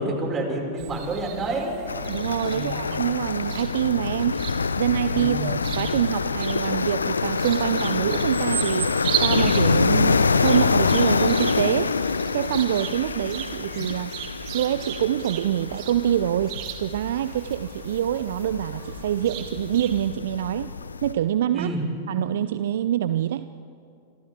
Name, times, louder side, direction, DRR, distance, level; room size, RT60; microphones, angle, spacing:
voice 1, 0.0-1.8 2.5-2.9 5.1-5.6 21.5-21.8, right 2 dB, 25° right, 0 dB, 6.0 m, -28 dB
sound 1, 0.8-20.1, right 10 dB, 45° right, 2.4 m, -36 dB
sound 2, 1.9-21.1, left 4 dB, 80° left, 0.7 m, -26 dB
voice 2, 2.1-14.1 14.5-20.7 21.0-21.7 22.1-23.5, right 11 dB, 65° right, 13 dB, 0.5 m, -25 dB
29.5 x 25.5 x 3.7 m, 2.6 s
figure-of-eight pair, 95°, 0 cm